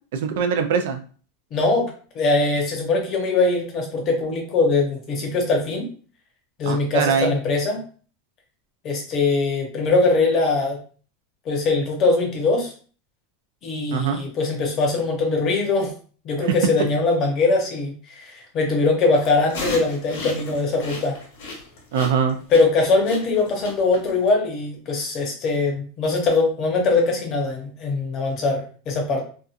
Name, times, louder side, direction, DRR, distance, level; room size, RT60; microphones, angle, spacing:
voice 1, 0.1-1.0 6.6-7.3 13.9-14.2 21.9-22.4, right 6 dB, 70° right, 7 dB, 0.4 m, -22 dB
voice 2, 1.5-5.9 6.6-7.8 8.8-10.8 11.4-12.7 13.6-15.9 16.2-21.1 22.5-29.2, left 3 dB, 30° left, 1 dB, 0.8 m, -21 dB
sound 1, 19.2-24.3, left 2 dB, 75° left, 1.0 m, -34 dB
2.7 x 2.3 x 2.4 m, 0.41 s
supercardioid pair, 160°, 0 cm